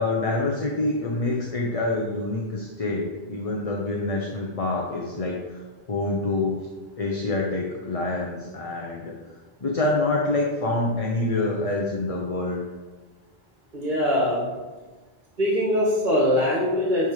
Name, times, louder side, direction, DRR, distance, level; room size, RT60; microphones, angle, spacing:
voice 1, 0.0-6.6 7.0-9.2 9.6-12.6, left 2 dB, 40° left, -1 dB, 0.9 m, -26 dB
voice 2, 13.7-14.5 15.4-17.1, left 1 dB, 55° right, -4 dB, 1.7 m, -22 dB
10.5 x 3.5 x 4.8 m, 1.3 s
omnidirectional pair, 1.0 m